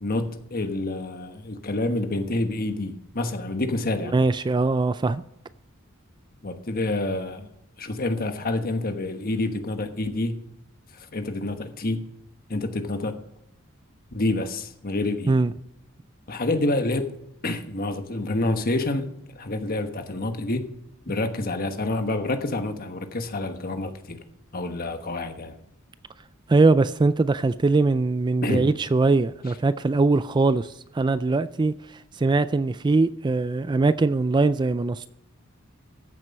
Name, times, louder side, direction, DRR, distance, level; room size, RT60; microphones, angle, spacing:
voice 1, 0.0-4.1 6.4-7.5 7.8-10.5 10.9-12.0 12.5-13.2 14.1-15.4 16.3-17.2 17.4-20.7 21.1-24.2 24.5-25.5 28.4-28.7, left 2 dB, 45° left, 1.2 m, -28 dB
voice 2, 4.1-5.2 15.3-15.5 26.5-35.1, right 3 dB, 20° right, 0.3 m, -21 dB
14.5 x 7.7 x 5.4 m
head